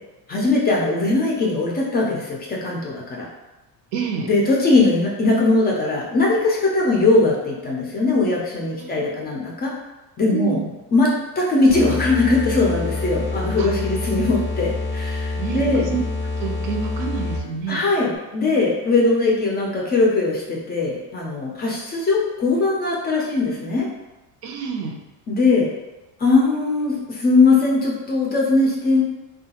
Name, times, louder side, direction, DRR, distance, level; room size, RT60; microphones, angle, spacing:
voice 1, 0.3-3.3 4.2-9.7 10.2-10.6 10.9-11.1 11.4-15.8 17.7-23.9 25.3-25.7 26.2-29.0, left 3 dB, 25° left, -2 dB, 0.3 m, -20 dB
voice 2, 3.9-4.3 8.8-9.1 10.3-10.7 13.6-14.3 15.4-16.0 16.4-17.8 24.4-25.0, right 6 dB, 80° right, 2 dB, 0.7 m, -28 dB
sound 1, 11.7-17.6, left 3 dB, 30° right, 0.5 m, -27 dB
3.6 x 2.3 x 2.8 m, 1.0 s
cardioid pair, 165°, 40 cm